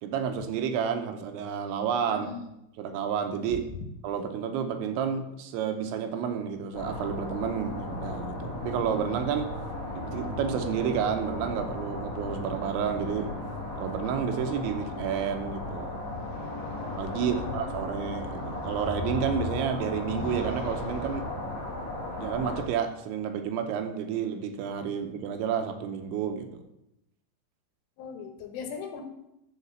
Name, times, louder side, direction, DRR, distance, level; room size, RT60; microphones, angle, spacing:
voice 1, 0.0-2.3 2.8-3.6 4.0-9.5 9.9-13.3 13.8-16.0 17.0-21.3 22.2-26.6, right 7 dB, 80° right, 6 dB, 3.0 m, -30 dB
voice 2, 2.1-2.5 3.4-3.7 17.2-17.9 28.0-29.0, left 5 dB, 80° left, 3 dB, 3.7 m, -39 dB
sound 1, 6.7-22.6, left 2 dB, 50° left, 2.5 m, -36 dB
sound 2, 14.8-21.2, left 2 dB, 65° left, 1.8 m, -40 dB
11.0 x 4.1 x 7.0 m, 0.85 s
omnidirectional pair, 5.6 m